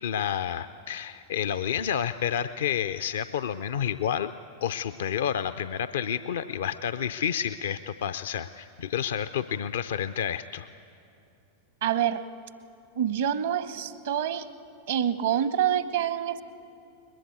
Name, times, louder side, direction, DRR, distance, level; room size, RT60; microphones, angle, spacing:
voice 1, 0.0-4.3 4.6-10.7, left 9 dB, 60° left, 12 dB, 0.5 m, -30 dB
voice 2, 11.8-12.2 12.9-14.5 14.9-16.4, right 10 dB, 65° right, 14 dB, 0.9 m, -26 dB
21.5 x 21.5 x 8.4 m, 2.8 s
figure-of-eight pair, 90°, 0 cm